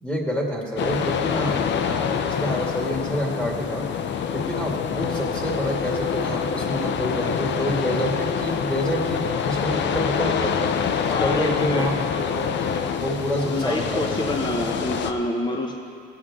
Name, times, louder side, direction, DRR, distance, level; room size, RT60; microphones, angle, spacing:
voice 1, 0.0-3.9 4.3-10.7 11.2-12.4 13.0-14.3, equal, 5° left, -2 dB, 2.3 m, -28 dB
Storm Caught in Lift Shaft, 0.8-15.1, left 7 dB, 65° left, 0.7 m, -26 dB
voice 2, 11.1-11.9 13.5-15.7, left 1 dB, 20° left, 1 dB, 1.0 m, -27 dB
16.5 x 8.1 x 3.7 m, 2.3 s
cardioid pair, 90°, 20 cm